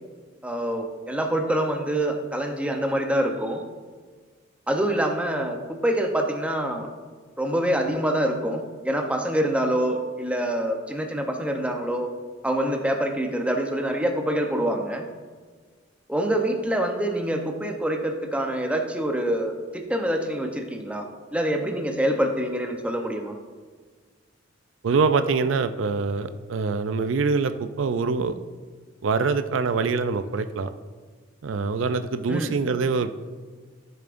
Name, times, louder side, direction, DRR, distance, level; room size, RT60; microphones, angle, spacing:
voice 1, 0.4-3.6 4.7-6.9 7.4-12.1 12.4-15.0 16.1-21.0 21.3-23.4 32.3-32.6, right 1 dB, 5° right, 3 dB, 0.7 m, -26 dB
voice 2, 24.8-28.3 29.0-30.7 31.4-33.1, right 4 dB, 80° right, 10 dB, 0.4 m, -24 dB
14.0 x 6.8 x 2.6 m, 1.5 s
head